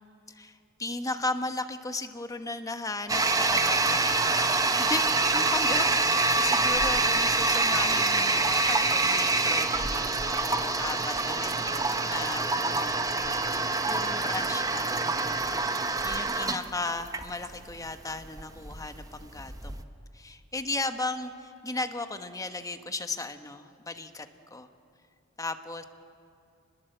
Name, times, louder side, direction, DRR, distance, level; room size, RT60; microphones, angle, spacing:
voice 1, 0.3-4.3 4.8-12.9 13.8-19.8 20.1-24.7 25.4-25.8, left 2 dB, 15° left, 8 dB, 1.1 m, -36 dB
Toilet flush, 3.1-19.8, right 3 dB, 15° right, 1.0 m, -26 dB
27.5 x 21.0 x 7.9 m, 2.6 s
head